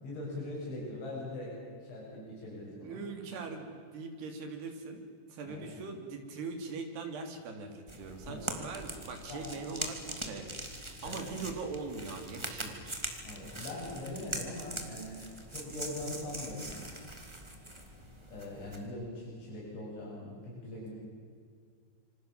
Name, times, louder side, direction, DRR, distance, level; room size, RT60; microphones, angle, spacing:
voice 1, 0.0-3.0 5.4-5.7 8.2-8.5 9.3-9.5 11.0-11.2 13.2-16.9 18.3-20.9, left 1 dB, 75° left, -4 dB, 10.0 m, -41 dB
voice 2, 2.8-5.0 5.3-10.5 10.8-13.0, right 4 dB, 60° right, 4 dB, 5.1 m, -41 dB
sound 1, 7.9-18.9, right 1 dB, 15° right, 1.0 m, -42 dB
27.5 x 26.0 x 7.5 m, 2.1 s
omnidirectional pair, 5.4 m